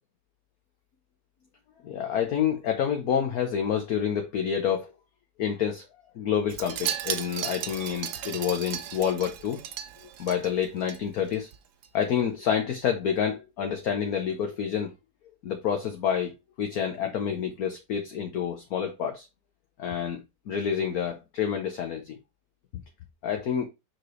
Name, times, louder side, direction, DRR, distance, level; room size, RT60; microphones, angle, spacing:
voice 1, 1.8-4.9 5.4-5.9 6.1-9.6 10.2-11.5 11.9-14.9 15.4-16.3 16.6-19.3 19.8-22.2 22.7-22.8 23.2-23.6, left 8 dB, 60° left, 1.3 m, -28 dB
Wind chime, 6.5-11.0 11.3-11.6 11.8-11.9, right 10 dB, 70° right, 1.2 m, -35 dB
6.1 x 5.1 x 3.1 m
omnidirectional pair, 2.0 m